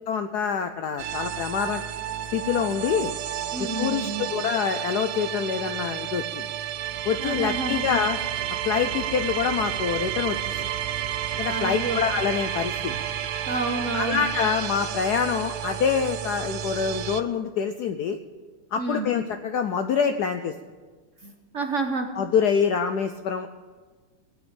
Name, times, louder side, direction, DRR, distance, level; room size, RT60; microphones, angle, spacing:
voice 1, 0.1-1.8 2.3-3.1 3.6-6.4 7.0-8.2 8.6-10.4 11.3-12.7 13.9-18.2 18.7-20.5 22.2-23.5, left 7 dB, 75° left, 8 dB, 0.9 m, -26 dB
sound 1, 1.0-17.2, right 11 dB, 80° right, 1.5 m, -31 dB
voice 2, 3.5-4.3 7.2-7.9 11.5-12.0 12.9-13.0 13.5-14.2 18.8-19.1 21.2-22.1, right 3 dB, 50° right, 4 dB, 1.0 m, -29 dB
18.5 x 6.3 x 8.8 m, 1.4 s
omnidirectional pair, 2.3 m